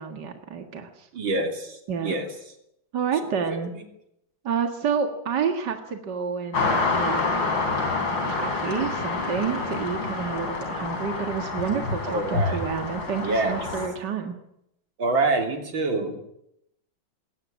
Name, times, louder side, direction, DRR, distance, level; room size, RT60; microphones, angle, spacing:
voice 1, 0.0-1.1 1.9-2.2 2.9-3.7 4.4-7.2 8.3-14.4, right 6 dB, 60° right, 5 dB, 2.4 m, -29 dB
voice 2, 1.1-2.3 3.4-3.6 12.1-12.6 13.2-13.6 15.0-16.2, right 2 dB, 80° right, 5 dB, 3.7 m, -26 dB
sound 1, 6.5-13.9, left 3 dB, 70° left, 4.7 m, -27 dB
21.0 x 17.5 x 9.0 m, 0.78 s
omnidirectional pair, 2.1 m